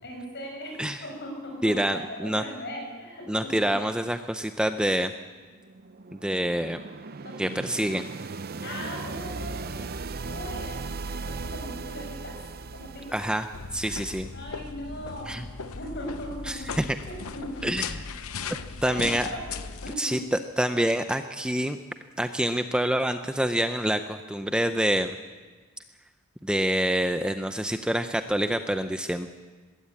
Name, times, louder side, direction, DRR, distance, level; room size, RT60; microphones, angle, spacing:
voice 1, 0.0-3.6 7.2-7.3 8.6-10.0 10.2-12.4 12.7-13.2 13.8-14.0 14.3-15.3 15.8-16.8 17.0-17.7 18.8-20.2, equal, 50° left, 1 dB, 7.1 m, -39 dB
voice 2, 1.6-2.4 3.3-5.1 6.2-6.8 7.4-8.0 13.1-13.5 13.7-14.3 15.3-15.4 16.5-16.8 17.6-17.9 18.8-19.3 20.0-21.8 22.2-25.2 26.4-29.3, right 1 dB, 5° right, 8 dB, 0.6 m, -26 dB
sound 1, 5.4-14.3, right 4 dB, 45° right, 0.6 m, -38 dB
sound 2, 13.5-19.9, left 5 dB, 70° left, 0.9 m, -37 dB
21.0 x 16.5 x 8.5 m, 1.4 s
head